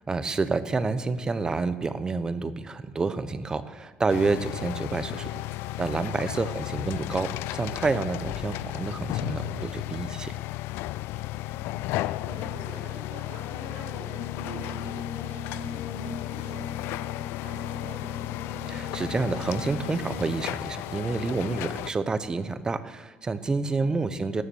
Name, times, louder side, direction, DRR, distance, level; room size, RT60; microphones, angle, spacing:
voice 1, 0.1-5.4 5.8-10.4 18.7-24.4, right 3 dB, 20° right, 12 dB, 0.7 m, -29 dB
sound 1, 4.1-21.9, left 17 dB, 80° left, 0.3 m, -34 dB
voice 2, 6.3-6.6 11.3-18.6 23.6-24.1, right 2 dB, 80° right, -3 dB, 4.5 m, -46 dB
Brass instrument, 14.2-20.6, left 3 dB, 40° left, 0.9 m, -40 dB
17.5 x 7.0 x 7.0 m, 1.3 s
cardioid pair, 150°, 4 cm